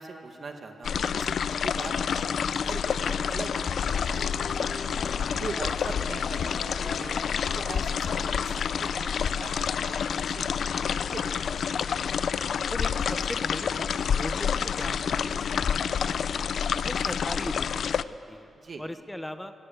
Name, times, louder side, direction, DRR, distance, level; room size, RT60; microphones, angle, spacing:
voice 1, 0.0-4.9 5.3-7.2 7.6-11.7 18.5-18.8, right 4 dB, 35° right, 4 dB, 1.9 m, -41 dB
sound 1, 0.8-18.0, left 7 dB, 55° left, 0.5 m, -28 dB
sound 2, 3.9-8.8, left 3 dB, 80° left, 3.4 m, -42 dB
voice 2, 12.7-16.4 16.8-18.5 18.8-19.5, left 1 dB, 5° left, 9 dB, 0.9 m, -39 dB
25.5 x 17.0 x 8.2 m, 2.7 s
wide cardioid pair, 175°, 0 cm